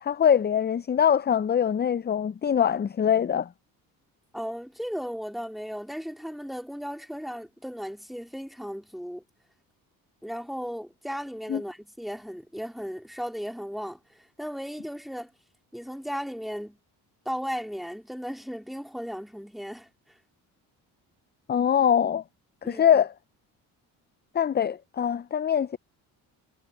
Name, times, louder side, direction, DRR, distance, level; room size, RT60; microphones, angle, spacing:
voice 1, 0.0-3.5 11.5-11.6 21.5-22.2 22.6-23.1 24.3-25.8, left 8 dB, 25° left, 0.5 m, -23 dB
voice 2, 4.3-9.2 10.2-15.3 15.7-16.8 17.3-19.9 22.6-22.9, equal, ahead, 3.9 m, -36 dB
supercardioid pair, 60°, 43 cm